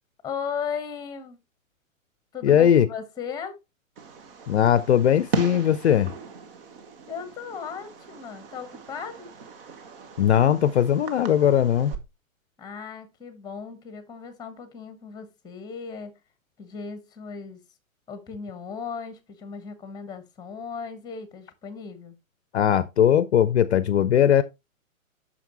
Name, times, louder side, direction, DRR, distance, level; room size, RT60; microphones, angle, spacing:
voice 1, 0.2-1.4 2.3-3.6 7.1-9.3 12.6-16.1 16.6-17.6 18.1-22.2, left 6 dB, 10° left, 1.1 m, -36 dB
voice 2, 2.4-2.9 4.5-6.1 10.2-11.9 22.5-24.4, left 9 dB, 55° left, 0.6 m, -19 dB
Fireworks, 4.0-12.0, right 5 dB, 45° right, 1.3 m, -37 dB
8.9 x 6.3 x 2.9 m
figure-of-eight pair, 110°, 41 cm